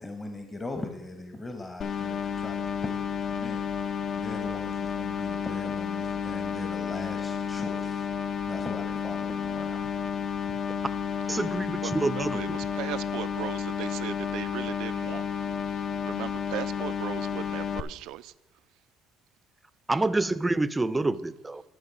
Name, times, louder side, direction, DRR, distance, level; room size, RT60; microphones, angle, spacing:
voice 1, 0.0-3.7 4.2-8.1 8.5-9.9, left 2 dB, 20° left, 5 dB, 0.9 m, -40 dB
sound 1, 1.8-17.8, left 7 dB, 50° left, 0.5 m, -31 dB
voice 2, 11.3-12.4 19.9-21.6, right 2 dB, 15° right, 15 dB, 0.4 m, -27 dB
voice 3, 11.8-15.3 15.7-18.3, right 14 dB, 75° right, 16 dB, 0.3 m, -38 dB
13.0 x 5.3 x 5.2 m, 1.0 s
cardioid pair, 95°, 0 cm